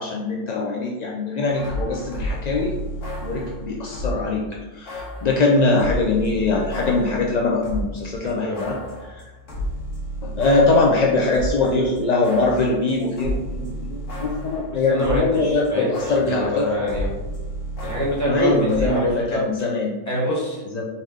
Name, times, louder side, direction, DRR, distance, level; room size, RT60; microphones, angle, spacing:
voice 1, 0.0-2.8 3.2-9.2 10.2-16.7 18.2-19.9 20.7-20.8, left 3 dB, 60° left, -1 dB, 0.4 m, -22 dB
sound 1, 1.5-4.3 4.9-8.0 8.3-15.4 15.7-18.9, equal, 80° left, 1.3 m, -32 dB
voice 2, 8.2-8.7 14.9-15.9 16.2-17.2 17.8-19.5 20.1-20.6, equal, 15° left, -6 dB, 1.3 m, -25 dB
4.2 x 3.6 x 3.5 m, 1.2 s
omnidirectional pair, 1.3 m